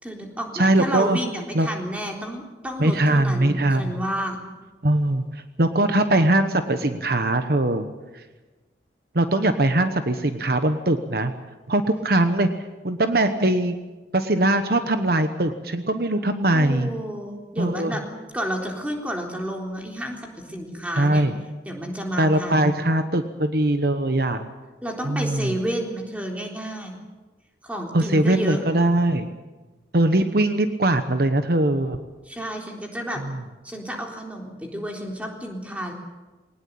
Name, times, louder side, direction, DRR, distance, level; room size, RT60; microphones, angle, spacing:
voice 1, 0.0-4.4 16.5-18.0 18.3-21.2 21.7-22.7 24.8-27.0 27.6-28.6 32.3-33.2 33.6-35.9, equal, 10° right, 1 dB, 3.7 m, -31 dB
voice 2, 0.5-1.2 1.5-1.7 2.8-4.0 4.8-7.8 8.1-8.2 9.1-11.3 11.7-12.5 12.8-13.7 14.1-16.9 17.6-17.9 21.0-21.3 22.2-24.5 25.0-25.6 27.9-29.3 29.9-32.0 33.2-33.4, right 1 dB, 55° right, 8 dB, 1.1 m, -21 dB
21.5 x 19.0 x 8.7 m, 1.2 s
head